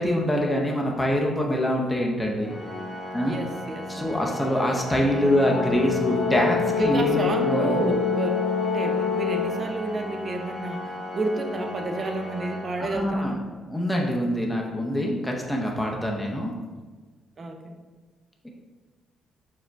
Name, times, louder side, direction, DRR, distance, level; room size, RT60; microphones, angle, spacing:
voice 1, 0.0-2.5 3.1-3.4 3.9-7.9 12.8-13.4 13.7-16.5, equal, 10° left, -1 dB, 0.6 m, -25 dB
Organ, 2.4-13.4, left 1 dB, 35° left, 0.9 m, -34 dB
voice 2, 3.2-4.4 6.7-8.3 8.7-13.4 17.4-17.8, right 2 dB, 40° right, 4 dB, 0.6 m, -30 dB
Brass instrument, 5.5-9.7, left 7 dB, 85° left, 0.4 m, -27 dB
4.8 x 2.1 x 4.5 m, 1.4 s
cardioid pair, 90°, 0 cm